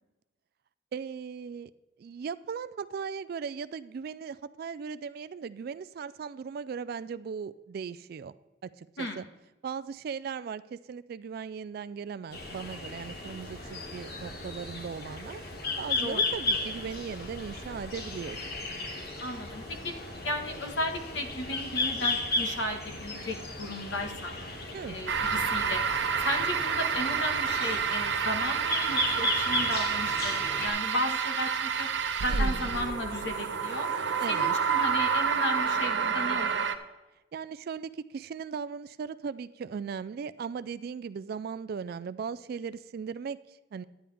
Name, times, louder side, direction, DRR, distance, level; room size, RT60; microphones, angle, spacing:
voice 1, 0.9-1.7 2.0-8.3 8.6-9.3 9.6-15.4 15.8-18.4 24.7-25.0 32.3-32.7 34.2-34.5 37.3-43.8, right 6 dB, 60° right, 15 dB, 0.3 m, -38 dB
sound 1, 12.3-30.7, left 2 dB, 60° left, 1.7 m, -35 dB
voice 2, 19.2-19.9 20.2-24.4 24.9-25.8 26.2-31.9 32.2-33.9 34.3-36.5, left 1 dB, 80° left, 5 dB, 1.5 m, -34 dB
sound 2, 25.1-36.8, right 6 dB, 80° right, 0.7 m, -29 dB
11.0 x 10.0 x 3.4 m, 1.1 s
head